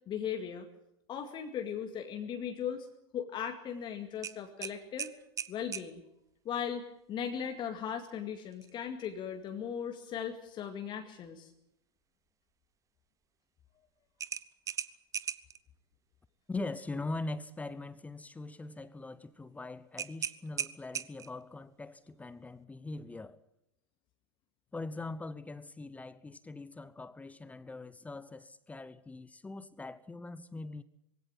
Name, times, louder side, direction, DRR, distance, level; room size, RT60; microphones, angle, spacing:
voice 1, 0.1-0.7 1.1-2.9 3.1-5.1 5.5-6.0 6.5-11.5, left 8 dB, 35° left, 2.1 m, -38 dB
sound 1, 4.2-5.9 8.5-8.7 9.2-9.3 14.2-15.6 20.0-21.4, right 8 dB, 25° right, 0.9 m, -38 dB
voice 2, 16.5-23.4 24.7-30.8, left 2 dB, 10° left, 0.8 m, -42 dB
21.5 x 17.0 x 9.1 m
figure-of-eight pair, 90°, 14 cm